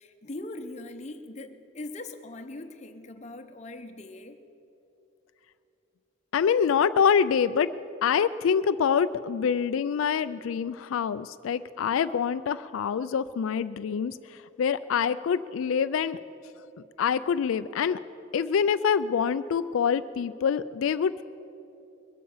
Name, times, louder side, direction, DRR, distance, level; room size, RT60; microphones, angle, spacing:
voice 1, 0.0-4.4, left 2 dB, 35° left, 7 dB, 0.8 m, -41 dB
voice 2, 6.3-7.7 8.0-14.2 14.6-16.2 17.0-18.0 18.3-21.2, left 7 dB, 85° left, 13 dB, 0.3 m, -25 dB
21.0 x 8.6 x 7.1 m, 2.9 s
head